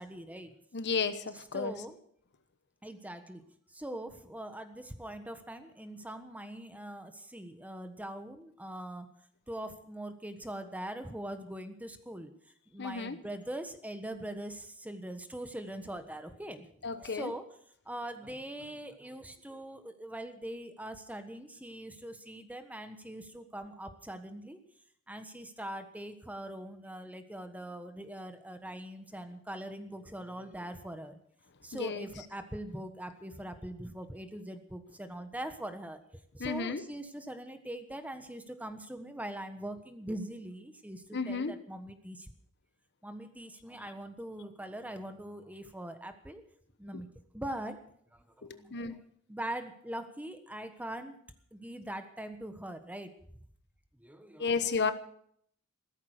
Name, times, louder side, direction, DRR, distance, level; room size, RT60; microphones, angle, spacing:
voice 1, 0.0-0.5 1.5-2.0 2.8-3.4 3.7-9.1 9.5-12.3 12.7-17.4 17.8-24.6 25.1-31.2 31.6-42.3 43.0-46.4 46.8-47.8 48.1-49.0 49.3-51.2 51.5-53.4 53.9-54.6, right 1 dB, 5° right, 8 dB, 1.3 m, -42 dB
voice 2, 0.7-1.7 12.8-13.2 16.8-17.3 31.7-32.1 36.4-36.8 41.1-41.5 46.9-47.0 48.4-49.0 54.4-54.9, left 5 dB, 50° left, 11 dB, 1.1 m, -33 dB
16.0 x 13.5 x 6.6 m, 0.65 s
head